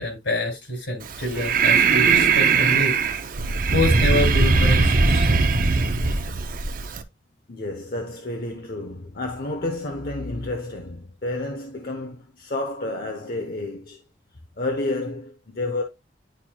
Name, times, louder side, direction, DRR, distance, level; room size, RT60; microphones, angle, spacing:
voice 1, 0.0-3.0 3.7-5.3, left 1 dB, 80° left, 3.2 m, -26 dB
Breathing, 1.0-7.0, right 4 dB, 50° right, 0.6 m, -20 dB
voice 2, 7.5-14.0 14.6-15.8, left 2 dB, 55° left, 0.8 m, -30 dB
10.0 x 4.4 x 2.3 m
head